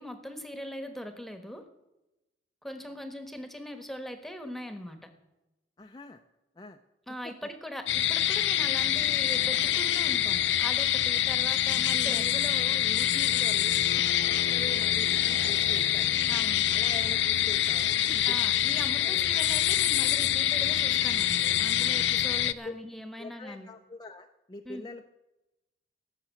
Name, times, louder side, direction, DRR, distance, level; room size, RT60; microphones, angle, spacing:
voice 1, 0.0-1.7 2.6-5.1 7.1-12.4 16.3-16.7 18.2-23.7 24.6-24.9, equal, ahead, 8 dB, 1.2 m, -41 dB
voice 2, 5.8-6.2 6.6-6.8 7.2-7.3 11.1-11.2 11.9-16.1 16.7-19.3 21.9-22.0 22.6-22.8 23.2-25.0, left 2 dB, 20° left, 4 dB, 0.5 m, -44 dB
sound 1, 7.9-22.5, left 12 dB, 80° left, 0.5 m, -26 dB
17.5 x 6.8 x 8.2 m, 1.0 s
head